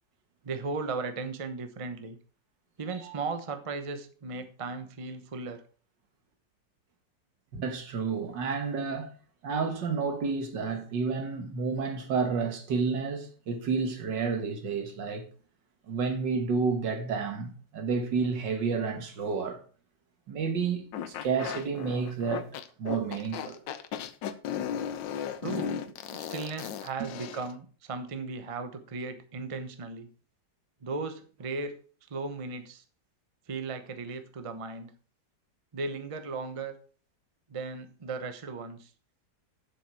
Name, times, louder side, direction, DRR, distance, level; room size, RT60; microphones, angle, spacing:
voice 1, 0.4-2.2 2.8-5.6 25.4-30.1 30.8-31.7 32.1-32.8 33.5-34.9 35.7-36.7 37.5-38.9, right 4 dB, 30° right, 0.7 m, -36 dB
voice 2, 7.5-9.1 9.4-15.2 15.9-19.6 20.3-23.6 27.0-27.1, right 5 dB, 75° right, 2.1 m, -30 dB
sound 1, 20.9-27.5, left 9 dB, 85° left, 1.4 m, -36 dB
7.7 x 7.2 x 4.7 m
omnidirectional pair, 1.9 m